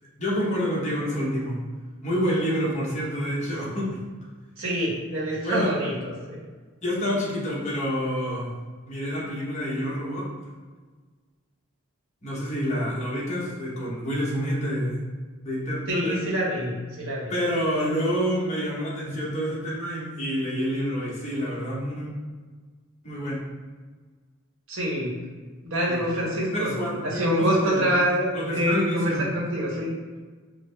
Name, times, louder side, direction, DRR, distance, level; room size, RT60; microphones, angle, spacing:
voice 1, 0.2-1.6 2.0-4.0 5.4-5.7 6.8-8.5 8.9-10.3 12.2-15.0 15.4-16.2 17.3-22.1 23.0-23.4 25.9-26.0 26.5-28.0 28.3-29.2, equal, 35° left, -6 dB, 1.0 m, -28 dB
voice 2, 4.6-6.4 15.9-17.3 24.7-25.1 25.6-26.7 27.0-29.9, equal, 75° right, -5 dB, 1.2 m, -26 dB
4.9 x 2.1 x 3.2 m, 1.4 s
head